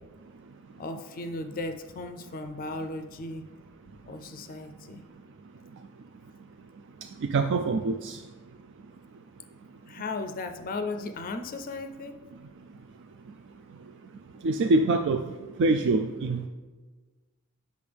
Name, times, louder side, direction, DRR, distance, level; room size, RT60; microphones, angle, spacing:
voice 1, 0.8-3.4 4.1-5.0 9.9-12.2, left 2 dB, 40° left, 7 dB, 0.4 m, -36 dB
voice 2, 7.2-8.2 14.4-15.2 15.6-16.5, right 3 dB, 55° right, 6 dB, 0.4 m, -24 dB
8.5 x 6.4 x 3.4 m, 1.3 s
head